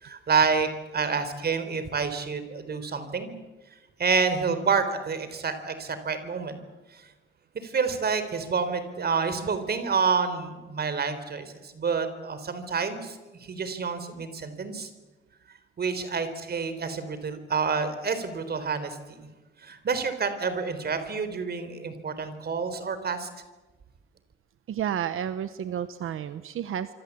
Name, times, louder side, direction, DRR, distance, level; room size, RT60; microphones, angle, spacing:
voice 1, 0.0-3.4 4.0-6.6 6.9-7.1 7.5-14.9 15.8-19.2 19.6-23.3, right 5 dB, 50° right, 10 dB, 3.9 m, -28 dB
voice 2, 24.7-26.9, right 9 dB, 85° right, 12 dB, 1.0 m, -31 dB
26.5 x 25.0 x 8.5 m, 1.2 s
wide cardioid pair, 135°, 21 cm